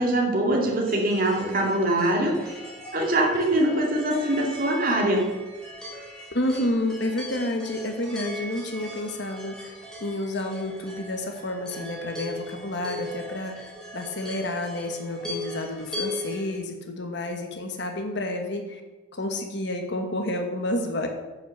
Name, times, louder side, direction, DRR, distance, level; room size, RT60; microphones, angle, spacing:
voice 1, 0.0-2.6 2.9-5.3, right 1 dB, 45° right, 0 dB, 2.2 m, -23 dB
sound 1, 0.8-16.6, left 1 dB, 5° left, 2.6 m, -39 dB
voice 2, 6.3-9.7 10.0-18.8 19.1-21.1, left 1 dB, 55° left, 4 dB, 1.2 m, -30 dB
9.8 x 6.2 x 6.5 m, 1.2 s
head